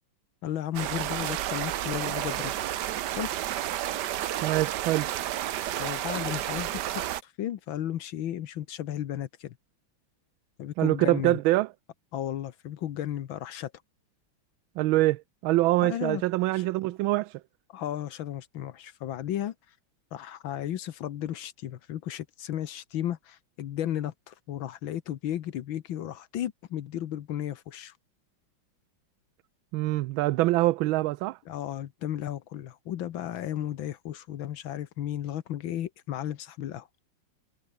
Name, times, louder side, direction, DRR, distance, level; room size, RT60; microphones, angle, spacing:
voice 1, 0.4-2.5 3.2-3.3 5.8-9.6 10.6-11.4 12.1-13.7 15.8-16.2 16.6-16.7 17.7-19.5 20.1-27.9 31.5-36.9, left 11 dB, 80° left, 1.8 m, -34 dB
sound 1, 0.7-7.2, right 12 dB, 65° right, 1.3 m, -31 dB
voice 2, 4.4-5.1 10.8-11.7 14.8-17.4 29.7-31.4, right 18 dB, 85° right, 1.4 m, -25 dB
omnidirectional pair, 2.2 m